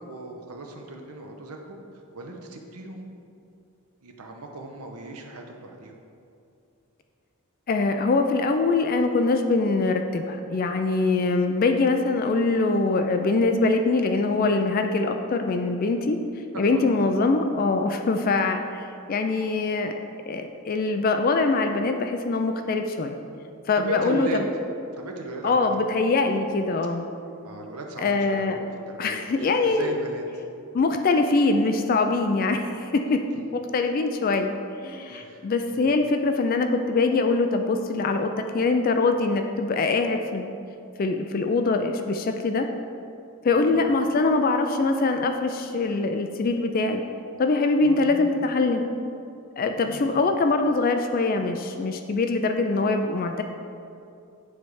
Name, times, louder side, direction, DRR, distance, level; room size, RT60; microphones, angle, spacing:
voice 1, 0.0-1.8 2.1-3.1 4.0-5.9 16.5-17.1 23.7-24.4 25.0-25.7 27.4-28.6 28.9-30.4 32.2-32.3 35.1-35.9 43.5-43.8 47.8-48.4 49.8-50.2, right 2 dB, 80° right, 2 dB, 0.8 m, -37 dB
voice 2, 7.7-16.2 16.6-19.9 20.3-23.2 23.7-24.3 25.4-27.1 28.0-28.6 29.0-30.0 30.7-33.2 33.5-34.5 34.8-40.5 41.0-42.7 43.4-47.0 47.4-48.8 49.6-53.4, left 3 dB, 40° left, 6 dB, 0.3 m, -23 dB
9.4 x 3.3 x 4.7 m, 2.6 s
head